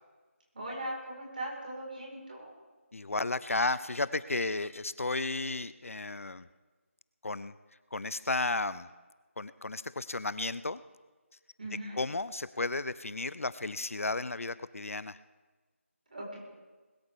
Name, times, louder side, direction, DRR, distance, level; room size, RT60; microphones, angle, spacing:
voice 1, 0.5-2.5 11.6-11.9 16.1-16.4, right 1 dB, 40° right, -2 dB, 4.8 m, -39 dB
voice 2, 2.9-6.5 7.2-7.5 7.9-8.9 9.4-10.8 12.0-15.2, left 3 dB, 75° left, 16 dB, 0.6 m, -33 dB
21.0 x 12.5 x 3.6 m, 1.3 s
figure-of-eight pair, 175°, 8 cm